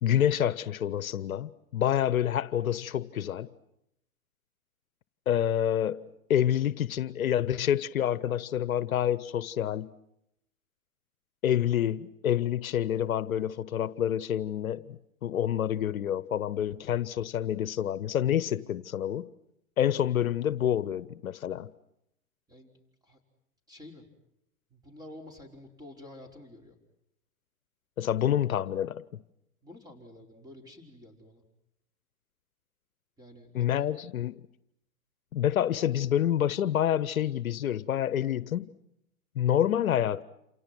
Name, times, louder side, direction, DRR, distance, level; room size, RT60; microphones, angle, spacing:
voice 1, 0.0-3.5 5.3-6.0 6.3-9.9 11.4-19.3 19.8-21.7 28.0-29.0 33.5-34.4 35.3-38.7 39.4-40.2, left 10 dB, 75° left, 0.9 m, -28 dB
voice 2, 23.7-24.1 24.7-26.8 29.6-31.4 33.2-33.9, left 1 dB, 10° right, 5.1 m, -49 dB
28.5 x 28.0 x 6.1 m
hypercardioid pair, 110°, 42 cm